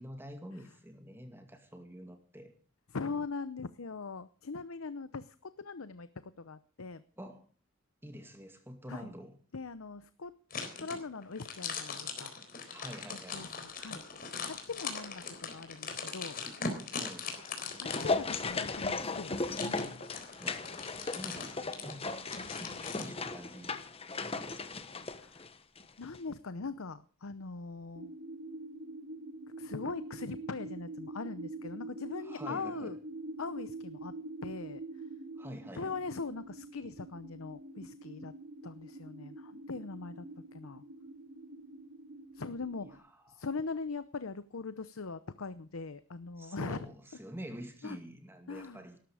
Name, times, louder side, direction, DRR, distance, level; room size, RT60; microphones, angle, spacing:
voice 1, 0.0-2.5 7.2-7.4 8.0-9.3 12.7-13.4 16.9-17.3 20.4-20.7 20.9-23.8 24.3-24.9 32.2-32.9 35.4-36.0 43.1-43.4 46.4-49.0, equal, 10° right, 5 dB, 2.2 m, -47 dB
voice 2, 2.9-7.0 8.9-9.1 9.5-10.3 10.8-12.3 13.3-14.0 14.5-16.4 17.8-19.5 25.1-25.4 26.0-28.1 29.6-33.0 33.4-34.1 34.4-34.8 35.8-38.3 38.6-40.3 40.5-40.8 42.3-46.9 47.8-48.0 48.5-48.8, left 4 dB, 85° left, 13 dB, 0.8 m, -41 dB
sound 1, 10.5-23.1, left 5 dB, 45° left, 3.9 m, -41 dB
sound 2, 17.3-25.9 26.1-26.2, left 3 dB, 30° left, 1.2 m, -37 dB
sound 3, 28.0-43.0, right 2 dB, 65° right, 2.8 m, -45 dB
18.5 x 13.5 x 5.0 m, 0.40 s
head